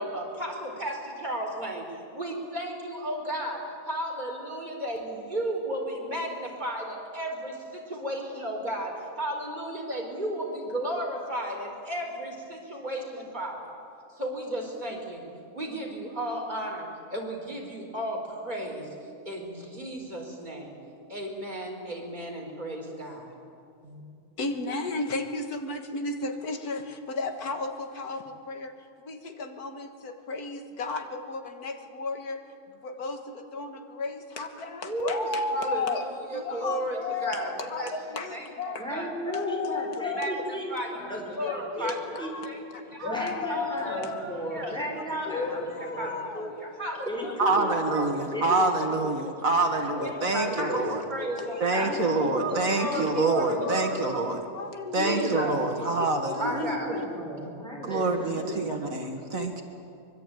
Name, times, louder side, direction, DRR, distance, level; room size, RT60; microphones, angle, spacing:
voice 1, 0.0-13.6 14.2-15.3 15.5-18.9 19.2-20.8 21.1-23.3 23.8-24.0 34.8-39.2 39.7-39.8 40.2-42.0 42.4-44.8 45.1-45.4 45.8-47.3 47.7-48.0 48.6-48.7 49.2-49.3 50.0-51.9 52.3-54.3 55.0-55.6 56.4-57.0, right 1 dB, 30° right, 0 dB, 4.6 m, -34 dB
voice 2, 24.4-28.7 29.0-32.4 32.8-36.1 36.3-38.8 39.3-40.3 41.4-42.5 43.0-44.2 45.3-46.5 47.2-49.1 49.9-50.8 51.2-51.8 53.1-53.6 54.5-55.2 55.6-55.7 56.0-57.1 58.5-58.9 59.3-59.5, left 3 dB, 80° left, 6 dB, 2.1 m, -34 dB
voice 3, 38.8-42.6 43.0-46.1 47.1-49.0 49.7-51.0 51.7-54.1 54.9-55.7 56.5-58.6, equal, 5° left, -2 dB, 5.4 m, -36 dB
voice 4, 47.4-51.0 51.6-54.4 54.9-56.6 57.8-59.6, right 3 dB, 65° right, 4 dB, 2.1 m, -26 dB
24.0 x 23.0 x 9.2 m, 2.5 s
omnidirectional pair, 1.6 m